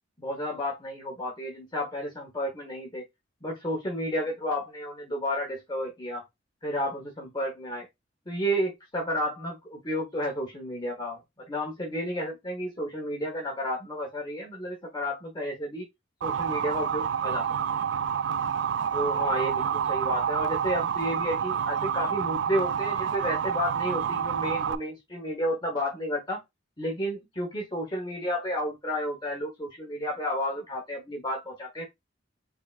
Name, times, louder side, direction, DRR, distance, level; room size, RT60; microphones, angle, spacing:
voice 1, 0.2-3.0 3.4-6.2 6.6-7.9 8.3-15.9 16.2-17.8 18.9-26.4 26.8-31.8, equal, 25° left, 1.2 m, -32 dB
Motor vehicle (road) / Siren, 16.2-24.7, right 8 dB, 60° right, 0.3 m, -28 dB
5.0 x 3.5 x 2.5 m
head